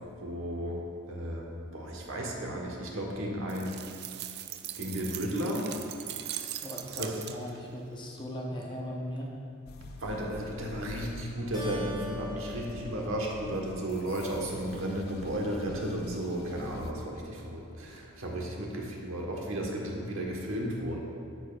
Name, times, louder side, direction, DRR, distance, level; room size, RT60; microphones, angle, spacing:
voice 1, 0.2-0.8 1.1-3.8 4.7-5.7 6.9-7.2 10.0-21.0, right 1 dB, 75° right, -1 dB, 1.2 m, -34 dB
sound 1, 3.5-7.7, right 12 dB, 50° right, 0.3 m, -40 dB
voice 2, 6.6-9.3, equal, 20° left, -1 dB, 0.7 m, -38 dB
sound 2, 9.7-16.9, left 3 dB, 45° left, 0.3 m, -46 dB
Keyboard (musical), 11.5-14.4, left 2 dB, 20° right, 1.6 m, -43 dB
9.9 x 7.0 x 2.3 m, 2.7 s
head